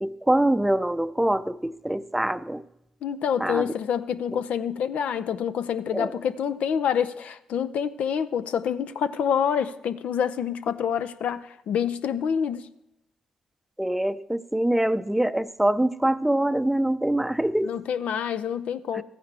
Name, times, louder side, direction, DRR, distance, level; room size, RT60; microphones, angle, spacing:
voice 1, 0.0-2.6 3.4-3.7 4.3-4.4 5.9-6.2 13.8-17.8 18.9-19.0, right 1 dB, 5° right, 12 dB, 0.5 m, -24 dB
voice 2, 3.0-12.7 17.6-19.0, left 8 dB, 70° left, 12 dB, 0.5 m, -27 dB
14.0 x 9.5 x 3.4 m, 0.82 s
supercardioid pair, 50°, 2 cm